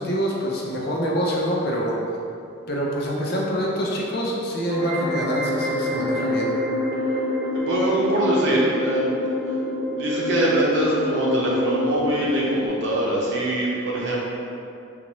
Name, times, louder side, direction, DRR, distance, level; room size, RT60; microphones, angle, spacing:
voice 1, 0.0-1.9 2.7-6.5, equal, 50° left, -3 dB, 0.5 m, -25 dB
sound 1, 4.7-12.7, left 1 dB, 25° right, 0.5 m, -26 dB
voice 2, 7.5-9.2 10.0-14.2, right 1 dB, 65° right, -5 dB, 0.8 m, -23 dB
4.0 x 2.5 x 3.0 m, 2.6 s
head